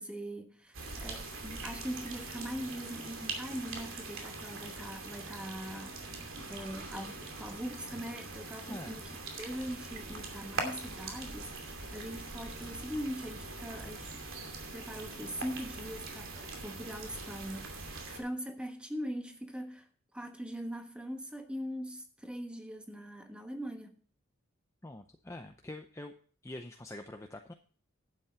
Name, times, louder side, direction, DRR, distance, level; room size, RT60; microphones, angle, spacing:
voice 1, 0.0-14.2 14.7-23.9, equal, 5° right, 1.2 m, -41 dB
sound 1, 0.7-18.2, right 3 dB, 75° right, 2.6 m, -42 dB
voice 2, 8.7-9.0 24.8-26.1 26.4-27.5, left 1 dB, 15° left, 0.6 m, -45 dB
11.5 x 8.3 x 4.4 m
head